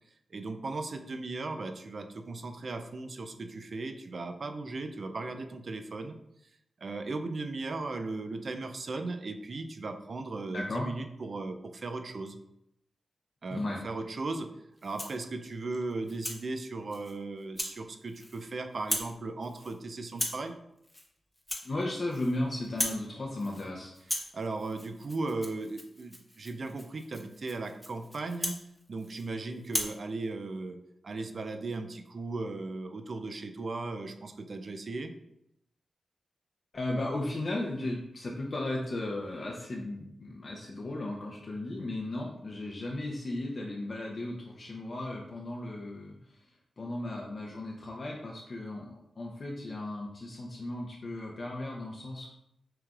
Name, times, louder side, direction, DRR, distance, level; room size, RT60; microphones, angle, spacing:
voice 1, 0.3-6.1 6.8-12.4 13.4-14.5 14.8-20.6 24.3-28.6 28.9-30.8 31.0-35.1, right 3 dB, 55° right, 7 dB, 0.5 m, -37 dB
voice 2, 10.5-10.9 13.5-13.8 21.6-23.9 36.7-46.5 46.8-52.3, left 2 dB, 50° left, -2 dB, 0.7 m, -35 dB
Rattle (instrument), 14.8-15.2 15.7-16.4 16.9-17.1 17.5-17.8 18.1-18.5 18.8-19.2 19.4-19.7 20.1-20.5 20.8-21.1 21.4-22.4 22.6-23.1 23.4-23.7 23.9-29.3 29.6-30.0, left 1 dB, 15° left, 0.8 m, -37 dB
5.9 x 3.3 x 2.4 m, 0.80 s
cardioid pair, 70°, 0 cm